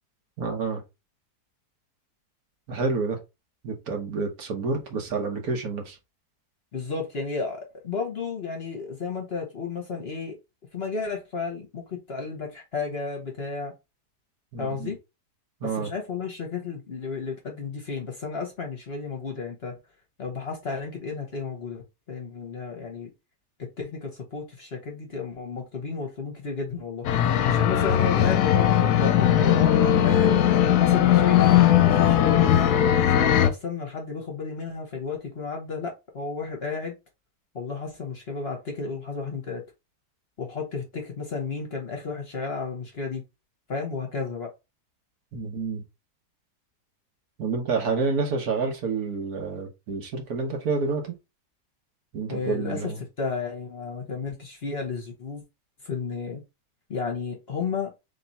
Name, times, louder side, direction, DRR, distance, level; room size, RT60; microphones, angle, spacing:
voice 1, 0.4-0.8 2.7-3.2 3.6-6.0 14.5-14.9 15.6-15.9 45.3-45.8 47.4-51.2 52.1-53.0, right 4 dB, 65° right, 1.5 m, -28 dB
voice 2, 6.7-10.4 10.7-13.7 14.6-15.0 15.6-19.8 20.2-23.1 23.6-27.0 27.5-30.3 30.7-31.5 31.8-32.7 33.0-37.0 37.5-39.6 40.4-43.2 43.7-44.5 52.3-52.9 53.2-55.4 55.8-56.4 56.9-57.9, left 5 dB, 45° left, 1.0 m, -32 dB
sound 1, 27.0-33.5, left 11 dB, 75° left, 1.1 m, -19 dB
3.4 x 3.0 x 4.0 m
omnidirectional pair, 1.8 m